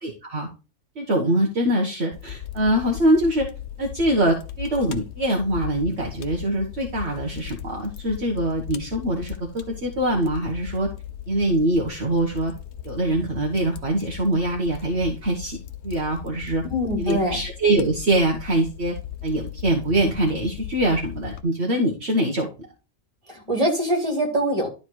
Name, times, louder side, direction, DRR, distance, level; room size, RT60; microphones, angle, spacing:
voice 1, 0.0-0.5 0.9-3.5 3.8-10.9 11.3-12.5 12.8-15.6 15.8-16.6 17.0-18.9 19.2-22.5, right 1 dB, 60° right, -2 dB, 1.6 m, -23 dB
Fire, 2.1-21.4, left 10 dB, 65° left, 1.1 m, -38 dB
voice 2, 16.7-17.4 23.3-24.7, equal, 30° right, 1 dB, 2.8 m, -23 dB
11.5 x 4.1 x 4.6 m, 0.32 s
omnidirectional pair, 1.3 m